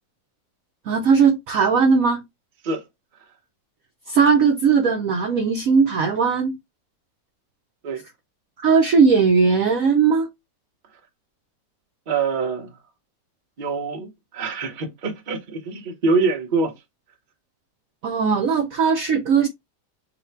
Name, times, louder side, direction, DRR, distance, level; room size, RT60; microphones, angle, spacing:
voice 1, 0.9-2.2 4.1-6.6 8.6-10.3 18.0-19.5, right 5 dB, 65° right, 0.9 m, -18 dB
voice 2, 12.1-12.7 13.6-16.7, right 4 dB, 40° right, 0.8 m, -25 dB
4.1 x 2.2 x 4.3 m
omnidirectional pair, 1.9 m